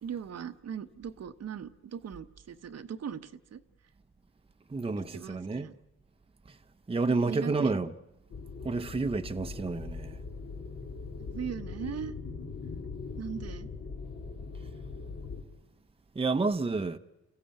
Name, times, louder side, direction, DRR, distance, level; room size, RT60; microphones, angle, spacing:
voice 1, 0.0-3.6 5.1-5.7 7.1-7.7 11.2-12.1 13.2-13.7, right 8 dB, 60° right, 1.0 m, -39 dB
voice 2, 4.7-5.7 6.5-6.6 6.9-7.9 8.6-10.2 16.1-17.0, right 3 dB, 20° right, 0.8 m, -30 dB
sound 1, 8.3-15.4, left 4 dB, 60° left, 2.4 m, -41 dB
29.0 x 15.0 x 8.9 m
cardioid pair, 80°, 29 cm